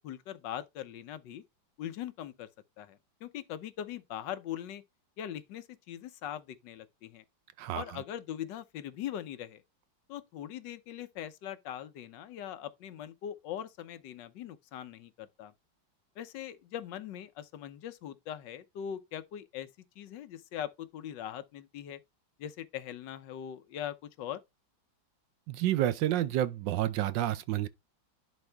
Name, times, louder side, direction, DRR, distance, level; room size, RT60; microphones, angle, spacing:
voice 1, 0.0-1.4 1.8-2.5 2.8-4.8 5.2-7.2 7.7-9.6 10.1-15.5 16.2-19.7 20.0-22.0 22.4-24.4, left 10 dB, 70° left, 1.4 m, -41 dB
voice 2, 25.5-27.7, right 13 dB, 75° right, 1.2 m, -29 dB
11.0 x 4.1 x 3.4 m
omnidirectional pair, 2.1 m